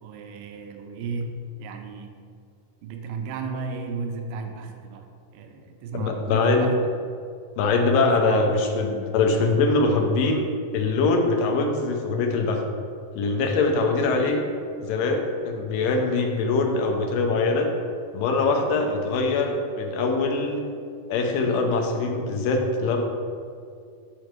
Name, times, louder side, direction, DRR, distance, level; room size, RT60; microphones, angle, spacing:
voice 1, 0.0-2.2 2.8-6.8 8.2-8.4, right 4 dB, 85° right, 5 dB, 2.3 m, -34 dB
voice 2, 5.9-6.7 7.6-10.5 10.7-12.6 13.1-14.4 14.8-17.7 18.1-20.6 21.1-23.1, left 3 dB, 90° left, 3 dB, 2.6 m, -23 dB
6.6 x 6.3 x 4.5 m, 2.3 s
omnidirectional pair, 3.8 m